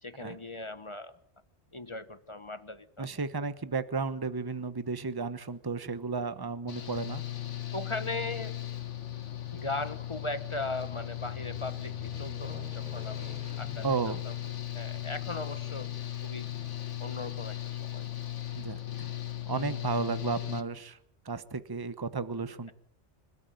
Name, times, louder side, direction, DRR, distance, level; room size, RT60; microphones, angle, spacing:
voice 1, 0.0-1.2 1.7-3.1 7.7-8.6 9.5-13.8 14.3-14.4 14.7-15.9 16.2-16.5 17.0-18.1 19.4-19.6, left 2 dB, 25° left, 12 dB, 1.1 m, -38 dB
voice 2, 3.0-7.2 13.8-14.2 18.5-19.1 19.5-21.0 21.2-22.7, right 4 dB, 20° right, 13 dB, 1.0 m, -33 dB
Aircraft, 5.8-18.2 18.6-18.7, left 1 dB, 5° right, 4.2 m, -53 dB
Engine / Mechanical fan, 6.7-20.6, left 12 dB, 85° left, 1.6 m, -37 dB
26.0 x 13.5 x 9.0 m, 0.68 s
omnidirectional pair, 1.2 m